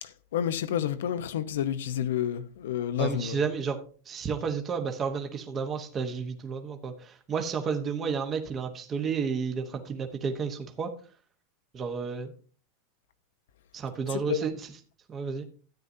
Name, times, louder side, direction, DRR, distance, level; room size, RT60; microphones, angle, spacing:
voice 1, 0.0-3.4 14.1-14.5, left 10 dB, 85° left, 0.9 m, -30 dB
voice 2, 3.0-3.8 4.0-10.9 11.7-12.3 13.7-14.7 15.1-15.4, right 6 dB, 25° right, 1.1 m, -31 dB
13.0 x 9.2 x 2.7 m
supercardioid pair, 145°, 0 cm